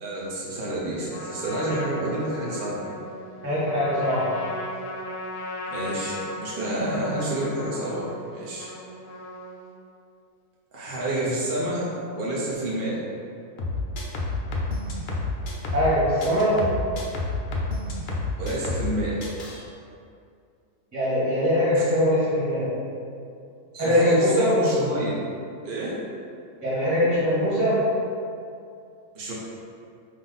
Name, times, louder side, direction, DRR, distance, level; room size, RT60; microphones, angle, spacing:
voice 1, 0.0-2.9 5.7-8.7 10.7-13.0 18.4-19.2 21.7-21.8 23.7-25.1 25.6-26.0 29.1-29.3, right 1 dB, 50° right, -6 dB, 0.6 m, -29 dB
Trumpet, 1.1-9.8, left 1 dB, 85° left, 1.1 m, -37 dB
voice 2, 3.4-4.4 15.7-16.6 20.9-22.8 23.8-24.6 26.6-27.8, equal, 10° right, -9 dB, 1.3 m, -22 dB
sound 1, 13.6-15.9 16.2-18.9 19.2-19.6, left 2 dB, 65° left, 0.5 m, -29 dB
4.8 x 2.8 x 4.0 m, 2.4 s
omnidirectional pair, 1.7 m